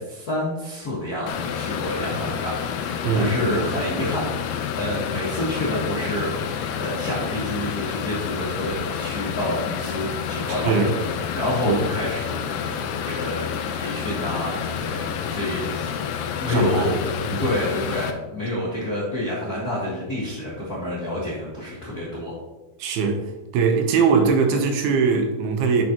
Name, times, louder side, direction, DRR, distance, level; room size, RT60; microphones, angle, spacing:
voice 1, 0.0-6.3 6.8-10.7 11.3-17.0 17.4-22.3, left 1 dB, 55° left, -6 dB, 1.0 m, -28 dB
sound 1, 1.3-18.1, left 7 dB, 80° left, 2.1 m, -29 dB
voice 2, 3.0-3.7 10.5-11.0 11.6-11.8 16.5-17.0 17.3-17.5 22.8-23.2 23.5-25.8, right 5 dB, 80° right, 5 dB, 2.7 m, -21 dB
10.5 x 6.1 x 2.9 m, 1.1 s
omnidirectional pair, 4.5 m